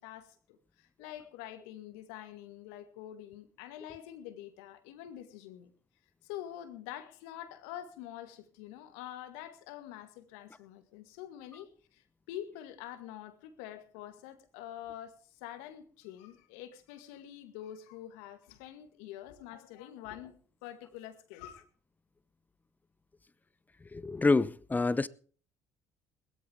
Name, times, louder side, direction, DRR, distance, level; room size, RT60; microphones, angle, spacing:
voice 1, 0.0-5.7 6.2-20.4 20.6-21.7, left 11 dB, 75° left, 2.0 m, -46 dB
voice 2, 23.9-25.1, left 3 dB, 20° left, 0.8 m, -27 dB
20.5 x 13.5 x 3.6 m
hypercardioid pair, 60°, 9 cm